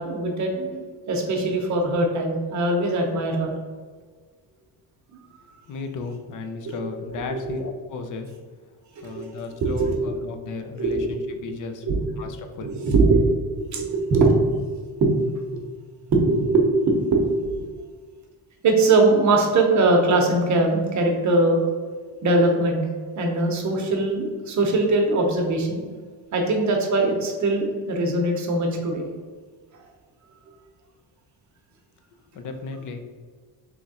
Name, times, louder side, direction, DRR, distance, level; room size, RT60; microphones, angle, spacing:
voice 1, 0.0-3.5 6.7-6.9 7.3-7.7 9.0-9.2 9.6-10.0 10.8-11.1 11.8-12.0 12.6-14.7 15.0-15.1 15.5-15.6 16.1-17.7 18.6-21.7 22.2-22.8 23.2-25.8 26.3-29.1, right 2 dB, 40° right, 2 dB, 0.8 m, -21 dB
voice 2, 5.6-8.3 9.0-11.9 12.2-12.7 32.3-33.0, left 4 dB, 45° left, 6 dB, 0.5 m, -34 dB
3.5 x 3.0 x 4.0 m, 1.5 s
cardioid pair, 160°, 44 cm